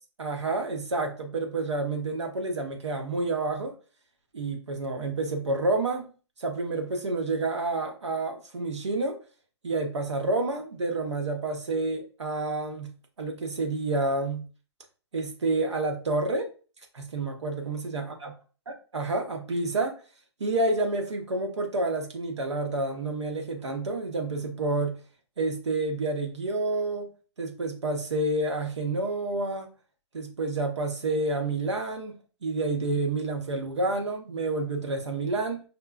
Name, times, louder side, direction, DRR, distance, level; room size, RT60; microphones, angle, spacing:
voice 1, 0.2-3.7 4.3-6.1 6.4-9.2 9.6-12.9 13.2-14.5 15.1-16.5 16.9-18.3 18.9-20.0 20.4-25.0 25.4-27.1 27.4-29.7 30.1-35.6, right 2 dB, 90° right, 4 dB, 1.0 m, -29 dB
5.4 x 2.2 x 2.3 m, 0.36 s
hypercardioid pair, 135°, 14 cm